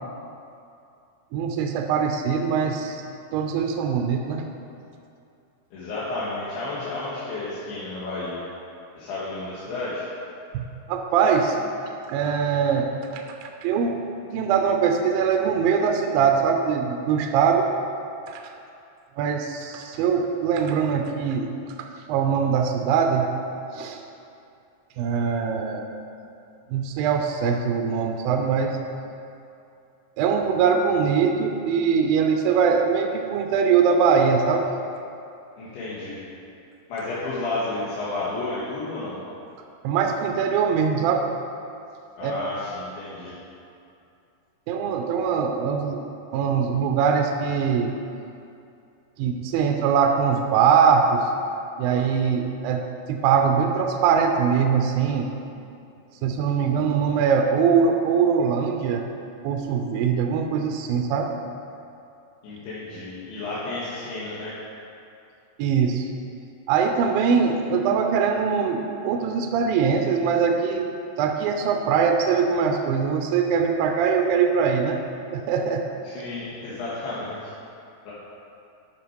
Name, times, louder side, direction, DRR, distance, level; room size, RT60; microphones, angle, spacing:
voice 1, 1.3-3.0 3.3-4.4 10.5-11.6 12.1-14.0 14.3-17.7 18.3-18.4 19.2-21.5 21.8-23.3 23.7-24.0 25.0-25.9 26.7-28.7 30.2-34.7 39.8-41.2 42.2-42.3 44.7-46.0 46.3-47.9 49.2-51.2 51.8-52.8 53.1-55.3 56.2-59.0 59.4-61.3 65.6-66.1 66.7-70.9 71.2-75.0 75.3-75.9, right 6 dB, 80° right, 3 dB, 2.2 m, -22 dB
voice 2, 5.7-8.4 8.9-10.1 35.6-36.2 36.9-39.2 42.2-43.3 62.4-64.5 76.0-77.5 78.1-78.2, left 2 dB, 85° left, -10 dB, 3.3 m, -31 dB
11.0 x 5.6 x 4.6 m, 2.6 s
omnidirectional pair, 4.6 m